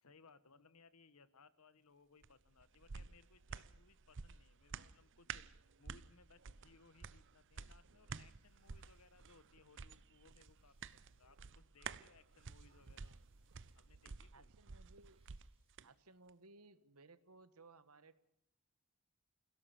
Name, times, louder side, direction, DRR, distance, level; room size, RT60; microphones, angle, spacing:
voice 1, 0.0-13.2 13.7-14.5, left 4 dB, 75° left, 15 dB, 1.3 m, -67 dB
sound 1, 2.2-15.9 16.3-16.4, right 6 dB, 60° right, 0.8 m, -52 dB
sound 2, 8.2-16.4, right 4 dB, 25° right, 7.6 m, -86 dB
voice 2, 14.3-15.2 15.8-18.2, right 3 dB, 80° right, 14 dB, 1.4 m, -62 dB
27.5 x 17.0 x 7.1 m, 0.81 s
head